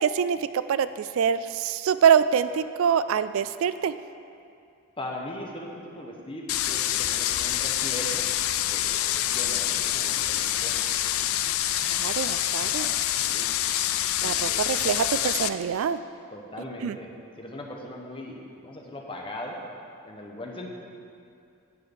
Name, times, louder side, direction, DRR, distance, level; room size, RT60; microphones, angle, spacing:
voice 1, 0.0-3.9 11.9-12.9 14.2-16.0 16.8-17.0, right 7 dB, 70° right, 14 dB, 0.3 m, -25 dB
voice 2, 5.0-8.3 8.6-10.7 12.6-12.9 13.2-13.5 14.2-14.6 16.3-17.1 17.4-19.6 20.0-20.7, left 1 dB, 25° left, 0 dB, 1.0 m, -39 dB
sound 1, 6.5-15.5, left 12 dB, 70° left, 0.4 m, -26 dB
9.7 x 4.8 x 7.9 m, 2.5 s
head